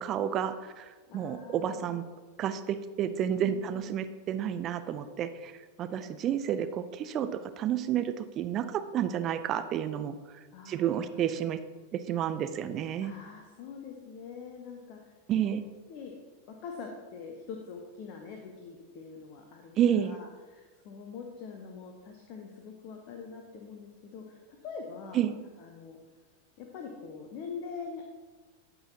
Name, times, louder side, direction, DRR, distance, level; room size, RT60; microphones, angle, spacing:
voice 1, 0.0-2.0 2.4-11.6 11.9-13.1 15.3-15.6 19.8-20.2 25.1-25.3, right 9 dB, 30° right, 10 dB, 0.4 m, -30 dB
voice 2, 1.1-1.9 3.4-3.9 10.5-11.1 13.0-15.6 15.9-16.1 16.5-25.2 25.6-26.0 26.6-28.1, left 5 dB, 40° left, 3 dB, 0.9 m, -44 dB
12.5 x 5.5 x 2.9 m, 1.3 s
figure-of-eight pair, 90°, 0 cm